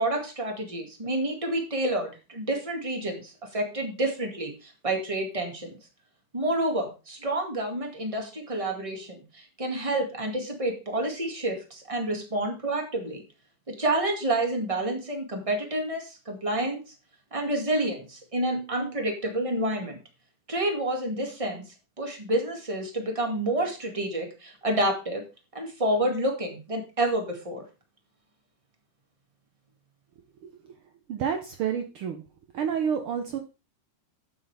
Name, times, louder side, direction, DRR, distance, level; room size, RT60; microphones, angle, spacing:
voice 1, 0.0-5.7 6.3-13.2 13.7-16.9 17.3-20.0 20.5-21.7 22.0-25.2 25.5-27.6, right 1 dB, 15° right, 2 dB, 1.7 m, -29 dB
voice 2, 30.4-30.8 31.1-32.2 32.5-33.4, right 7 dB, 80° right, 5 dB, 1.2 m, -29 dB
12.0 x 8.4 x 3.4 m, 0.31 s
omnidirectional pair, 3.7 m